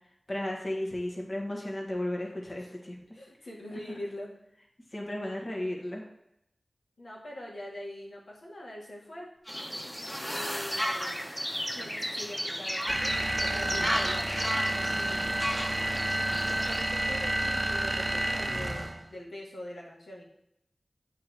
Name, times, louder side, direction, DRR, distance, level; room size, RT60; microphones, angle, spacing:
voice 1, 0.3-3.0 4.9-6.0, left 1 dB, 50° left, -1 dB, 1.8 m, -34 dB
voice 2, 3.1-4.3 7.0-9.3 10.3-11.3 11.7-14.4 14.6-15.5 16.4-20.2, left 1 dB, 85° left, -4 dB, 1.9 m, -43 dB
sound 1, 9.5-16.8, equal, 10° left, 1.2 m, -34 dB
sound 2, 12.9-19.1, right 1 dB, 35° right, 0.4 m, -30 dB
8.6 x 3.8 x 4.6 m, 0.79 s
cardioid pair, 45°, 0 cm